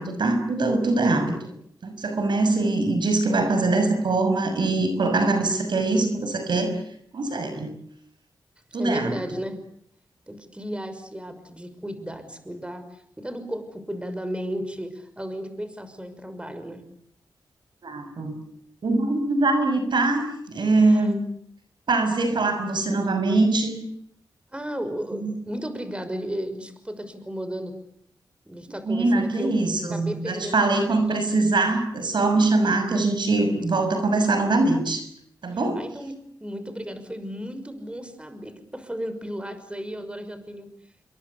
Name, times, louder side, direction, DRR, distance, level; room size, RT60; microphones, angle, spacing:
voice 1, 0.0-1.3 1.8-6.8 7.1-7.7 8.7-9.2 17.8-18.4 18.8-21.2 21.9-23.8 25.2-25.3 28.8-35.1 35.4-35.9, right 2 dB, 70° right, 8 dB, 6.2 m, -23 dB
voice 2, 8.7-9.6 10.3-16.8 20.8-21.1 24.5-27.7 28.5-29.6 29.9-31.2 35.7-36.1 36.4-40.7, equal, 15° right, 10 dB, 6.1 m, -34 dB
28.0 x 22.5 x 8.4 m, 0.69 s
cardioid pair, 55°, 8 cm